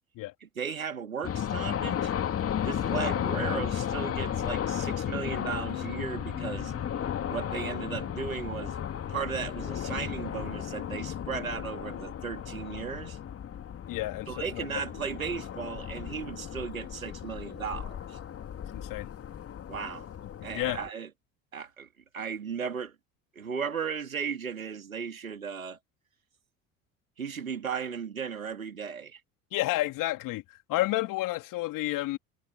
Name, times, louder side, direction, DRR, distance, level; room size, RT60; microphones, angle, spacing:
voice 1, 0.4-2.1 2.6-6.7 7.3-8.8 9.1-13.2 14.3-18.2 19.7-20.1 20.4-21.1 21.5-21.9 22.1-22.9 23.3-25.8 27.2-29.2, right 6 dB, 85° right, 3.0 m, -36 dB
sound 1, 1.2-20.9, left 9 dB, 35° left, 2.5 m, -34 dB
sound 2, 5.7-8.1, left 7 dB, 85° left, 3.2 m, -48 dB
voice 2, 13.9-14.6 18.7-19.1 20.5-20.8 29.5-32.2, left 17 dB, 50° left, 3.3 m, -30 dB
figure-of-eight pair, 65°, 40 cm